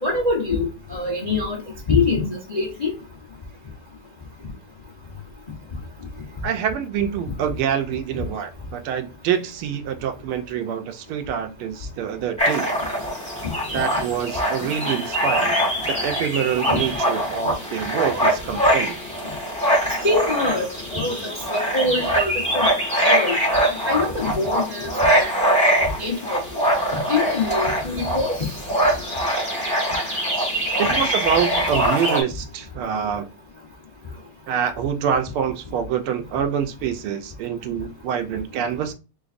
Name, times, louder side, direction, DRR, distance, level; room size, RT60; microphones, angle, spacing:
voice 1, 0.0-1.6 1.9-2.9 8.1-8.2 20.0-20.6 20.9-22.7 23.0-23.4 23.9-26.4 27.1-28.4, left 3 dB, 35° left, 0.6 m, -24 dB
voice 2, 6.4-12.7 13.7-15.6 15.9-19.0 30.8-33.3 34.5-38.9, right 8 dB, 80° right, 1.5 m, -26 dB
sound 1, 12.4-32.2, right 1 dB, 5° left, 1.2 m, -23 dB
3.8 x 3.8 x 2.5 m
omnidirectional pair, 2.4 m